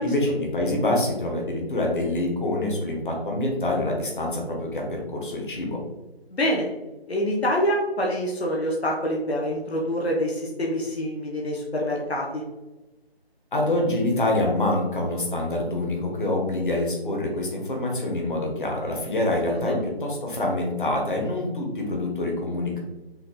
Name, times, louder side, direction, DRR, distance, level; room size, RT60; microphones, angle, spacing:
voice 1, 0.0-5.8 13.5-19.7 20.0-22.8, left 1 dB, 50° left, 0 dB, 1.3 m, -26 dB
voice 2, 6.3-6.7 7.1-12.4 19.5-19.8, equal, 75° left, -2 dB, 1.1 m, -26 dB
5.7 x 2.5 x 3.6 m, 1.0 s
figure-of-eight pair, 165°, 32 cm